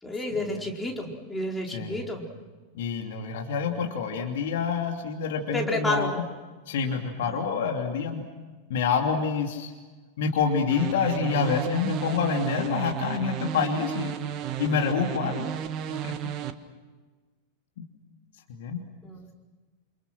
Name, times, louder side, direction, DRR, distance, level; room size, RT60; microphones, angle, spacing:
voice 1, 0.0-2.2 5.5-6.2 7.2-7.4 19.0-19.3, left 1 dB, 10° left, 0 dB, 4.6 m, -30 dB
voice 2, 1.7-2.1 2.7-6.2 6.7-8.2 8.7-9.7 10.2-14.2 14.6-15.5 15.9-16.1 18.5-18.8, left 6 dB, 55° left, 3 dB, 3.0 m, -27 dB
sound 1, 10.7-16.5, right 10 dB, 35° right, 1.6 m, -33 dB
29.0 x 28.5 x 6.2 m, 1.3 s
figure-of-eight pair, 90°, 0 cm